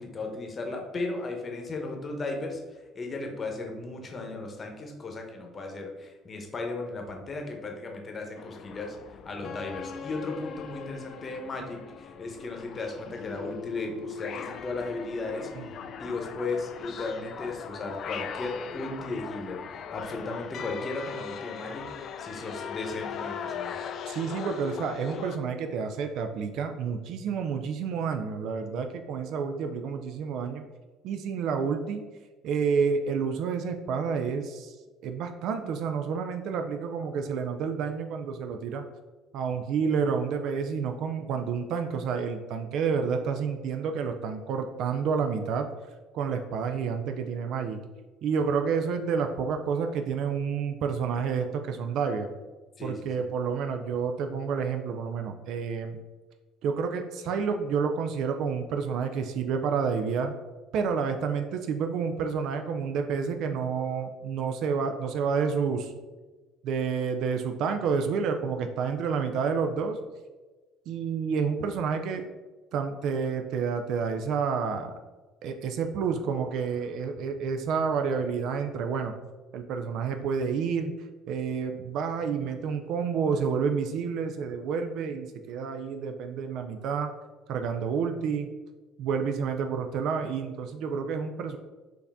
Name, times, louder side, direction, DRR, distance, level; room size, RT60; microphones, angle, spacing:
voice 1, 0.0-15.5 16.0-23.8 52.8-53.2, left 3 dB, 35° left, 2 dB, 0.9 m, -36 dB
sound 1, 8.4-25.4, left 7 dB, 55° left, 0.3 m, -40 dB
voice 2, 24.1-30.6 31.0-32.0 32.4-34.8 35.0-38.8 39.3-45.7 46.1-47.8 48.2-52.3 52.8-56.0 56.6-60.4 60.7-65.9 66.6-70.0 70.9-72.2 72.7-74.9 75.4-79.1 79.5-80.9 81.3-87.1 87.5-88.5 89.0-91.6, right 6 dB, 65° right, 6 dB, 0.3 m, -29 dB
4.6 x 2.6 x 3.5 m, 1.2 s
supercardioid pair, 85°, 0 cm